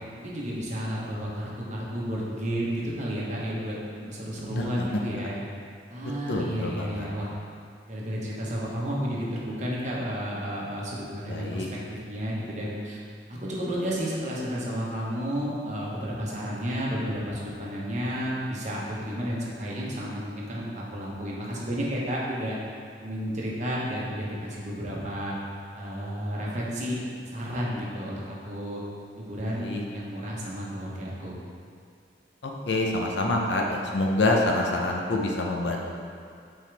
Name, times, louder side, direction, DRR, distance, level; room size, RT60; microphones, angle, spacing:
voice 1, 0.1-5.4 5.9-7.3 7.9-13.0 13.3-22.6 23.0-25.3 25.7-27.0 27.3-28.8 29.1-31.4, equal, 40° right, -5 dB, 1.2 m, -32 dB
voice 2, 4.5-5.0 6.3-7.1 11.2-11.7 29.5-29.8 32.4-36.0, left 2 dB, 80° left, 0 dB, 0.8 m, -27 dB
7.4 x 4.5 x 3.4 m, 2.4 s
head